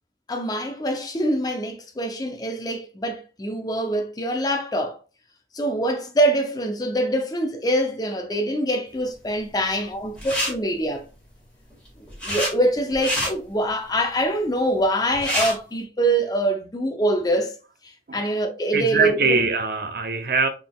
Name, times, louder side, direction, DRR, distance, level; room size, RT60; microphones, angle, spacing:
voice 1, 0.3-5.0 5.5-11.0 12.2-17.6 18.1-19.5, right 1 dB, 20° left, 0.5 m, -24 dB
sound 1, 10.1-10.5 11.7-12.5 12.9-13.3 14.8-14.9 15.1-15.5, equal, 5° left, 1.7 m, -26 dB
voice 2, 18.7-20.5, right 4 dB, 55° right, 0.6 m, -22 dB
4.0 x 3.5 x 2.3 m
head